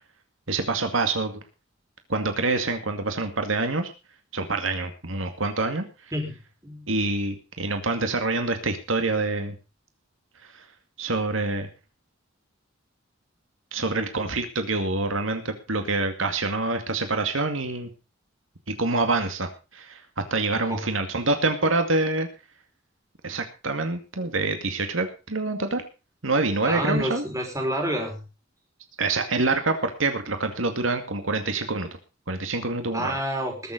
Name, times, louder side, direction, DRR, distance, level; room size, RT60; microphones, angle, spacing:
voice 1, 0.5-1.4 2.1-3.9 4.3-5.9 6.9-9.5 10.5-10.6 11.0-11.7 13.7-17.9 18.7-20.0 20.3-22.3 23.2-25.8 26.2-27.2 29.0-31.9 32.3-33.1, right 3 dB, 85° right, 7 dB, 2.3 m, -26 dB
voice 2, 26.6-28.2 32.9-33.7, equal, 15° right, 2 dB, 4.8 m, -28 dB
20.5 x 7.5 x 5.3 m, 0.32 s
head